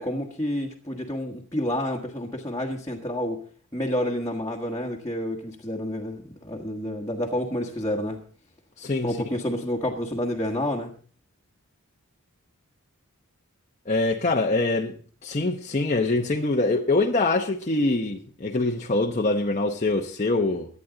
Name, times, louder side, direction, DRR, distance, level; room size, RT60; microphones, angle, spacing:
voice 1, 0.0-3.4 3.7-8.2 9.0-10.9, left 1 dB, 15° left, 1.5 m, -29 dB
voice 2, 8.8-9.2 13.9-14.9 15.2-20.7, left 2 dB, 30° left, 0.9 m, -24 dB
23.5 x 9.5 x 3.9 m
head